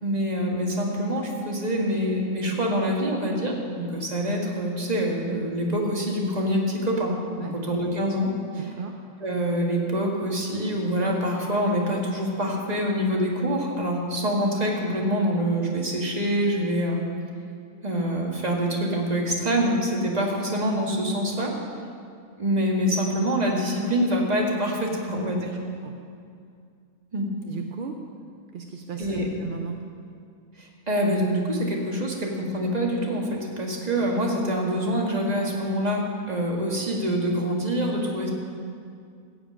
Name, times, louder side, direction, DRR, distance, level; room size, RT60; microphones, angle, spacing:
voice 1, 0.0-8.7 9.2-17.0 17.8-21.5 22.4-25.5 27.1-27.3 29.0-29.3 30.6-38.3, equal, 30° right, -1 dB, 1.7 m, -25 dB
voice 2, 8.6-8.9 25.8-25.9 27.4-28.0 28.5-29.8, right 5 dB, 50° right, 3 dB, 0.6 m, -35 dB
15.0 x 5.1 x 8.7 m, 2.3 s
omnidirectional pair, 1.5 m